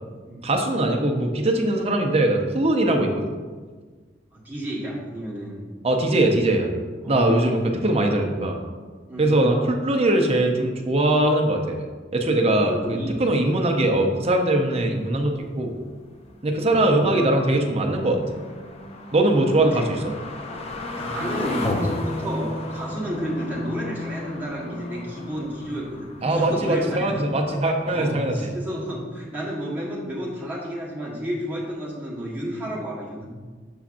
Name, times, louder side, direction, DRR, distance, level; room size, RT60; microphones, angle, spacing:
voice 1, 0.4-3.3 5.8-6.7 7.1-8.6 9.2-15.7 16.4-18.2 19.1-20.1 26.2-28.3, right 1 dB, 35° right, 3 dB, 0.6 m, -21 dB
voice 2, 4.3-5.6 7.0-7.7 9.1-9.5 12.7-13.2 16.4-17.3 19.6-19.8 20.9-27.3 27.8-33.3, equal, 10° right, -6 dB, 1.4 m, -32 dB
sound 1, 13.6-27.7 28.1-28.2 28.5-28.6, left 1 dB, 35° left, 0.5 m, -34 dB
6.9 x 5.7 x 2.5 m, 1.5 s
head